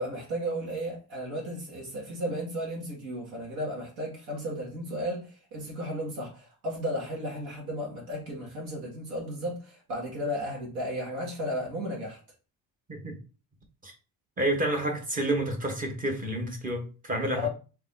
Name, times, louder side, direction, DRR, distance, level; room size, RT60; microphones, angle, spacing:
voice 1, 0.0-12.2 17.3-17.5, equal, 80° right, 2.0 m, -34 dB
voice 2, 14.4-17.5, right 1 dB, 20° right, 0.9 m, -29 dB
4.2 x 2.8 x 3.7 m
cardioid pair, 160°, 38 cm